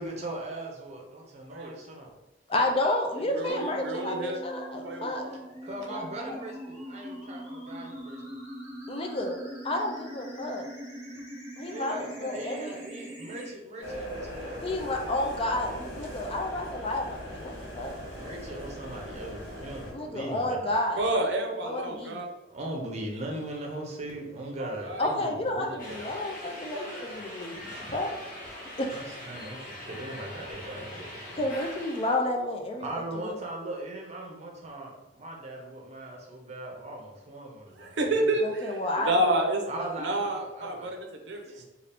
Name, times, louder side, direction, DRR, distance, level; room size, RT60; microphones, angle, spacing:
voice 1, 0.0-2.1 5.6-8.2 11.7-14.8 18.1-20.8 22.5-26.2 27.7-27.9 28.9-31.4 32.8-38.3 39.7-40.9 41.5-41.6, right 1 dB, 40° right, 0 dB, 0.6 m, -39 dB
voice 2, 2.5-5.2 5.9-6.4 8.9-9.4 9.6-10.7 11.6-12.7 14.6-17.9 19.9-21.0 21.6-22.2 25.0-28.1 28.8-28.9 31.4-32.9 33.2-33.4 38.4-39.4 39.8-39.9, left 1 dB, 30° left, 2 dB, 0.4 m, -31 dB
voice 3, 3.3-4.4 4.7-5.4 21.0-22.3 24.6-25.3 25.6-27.0 37.7-39.6 40.0-41.6, right 1 dB, 80° right, 1 dB, 0.5 m, -30 dB
sound 1, 3.5-13.5, equal, 10° right, 1.1 m, -42 dB
sound 2, 13.8-19.9, equal, 85° left, 1.0 m, -40 dB
sound 3, 25.8-32.2, left 1 dB, 50° left, 0.7 m, -42 dB
2.7 x 2.4 x 3.3 m, 1.0 s
head